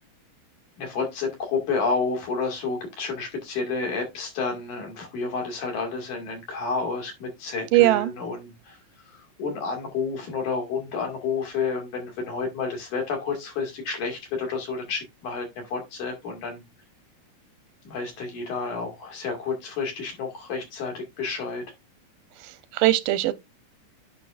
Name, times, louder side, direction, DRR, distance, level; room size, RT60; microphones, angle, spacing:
voice 1, 0.8-8.8 9.1-16.6 17.9-21.7, left 4 dB, 65° left, 3.6 m, -30 dB
voice 2, 7.7-8.1 22.4-23.3, right 16 dB, 90° right, 2.3 m, -20 dB
9.3 x 6.2 x 2.5 m
omnidirectional pair, 3.8 m